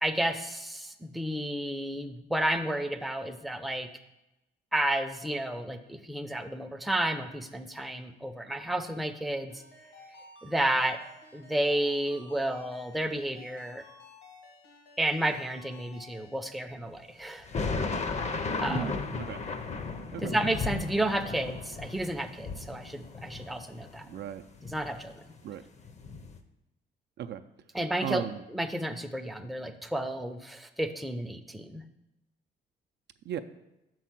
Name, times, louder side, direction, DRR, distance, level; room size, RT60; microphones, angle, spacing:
voice 1, 0.0-3.9 4.7-9.6 10.4-11.0 11.3-13.8 15.0-17.5 18.6-18.9 20.2-24.0 24.6-25.1 27.7-28.2 28.5-31.8, right 1 dB, ahead, 6 dB, 0.5 m, -31 dB
Ringtone, 9.5-16.4, left 2 dB, 75° left, 2.0 m, -53 dB
sound 1, 17.5-24.2 24.6-25.4 25.8-26.4, left 4 dB, 35° left, 0.7 m, -35 dB
voice 2, 18.7-19.4 20.1-20.4 24.0-24.4 25.4-25.6 27.2-27.4 28.0-28.4 33.3-33.4, right 9 dB, 60° right, 9 dB, 0.4 m, -36 dB
5.9 x 4.6 x 5.8 m, 0.94 s
cardioid pair, 90°, 20 cm